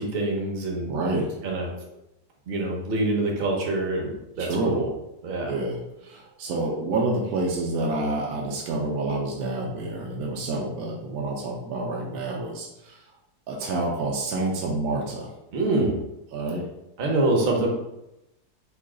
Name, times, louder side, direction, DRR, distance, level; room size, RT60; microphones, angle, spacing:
voice 1, 0.0-0.9 1.4-1.7 2.5-4.9 5.2-5.5 15.5-16.0 17.0-17.7, right 2 dB, 50° right, -1 dB, 0.7 m, -25 dB
voice 2, 0.9-1.4 4.4-4.8 5.5-13.0 13.5-15.3 16.3-16.7, right 2 dB, 75° right, -2 dB, 1.0 m, -28 dB
3.1 x 2.7 x 3.7 m, 0.89 s
omnidirectional pair, 1.8 m